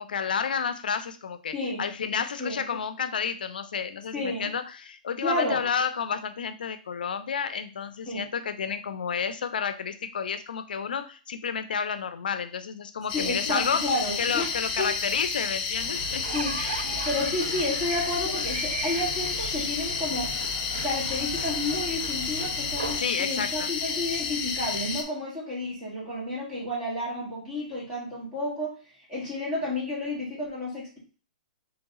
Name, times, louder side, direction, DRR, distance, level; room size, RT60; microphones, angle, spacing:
voice 1, 0.0-13.9 14.2-16.3 16.6-16.8 23.0-23.7, left 6 dB, 85° left, 11 dB, 0.5 m, -31 dB
voice 2, 1.5-1.9 2.4-2.6 4.1-4.5 5.2-5.6 8.1-8.2 13.1-14.9 16.3-16.6 17.1-20.3 20.8-28.8 29.1-31.0, left 1 dB, 10° right, -6 dB, 2.0 m, -31 dB
sound 1, 13.1-25.0, left 6 dB, 25° left, 0.7 m, -31 dB
sound 2, 13.8-13.9 14.2-14.3 15.9-17.1 18.0-18.1 18.5-18.6, right 8 dB, 65° right, 0.4 m, -36 dB
sound 3, 15.8-23.0, right 4 dB, 80° right, 1.4 m, -38 dB
4.0 x 3.2 x 3.6 m, 0.37 s
hypercardioid pair, 160°, 5 cm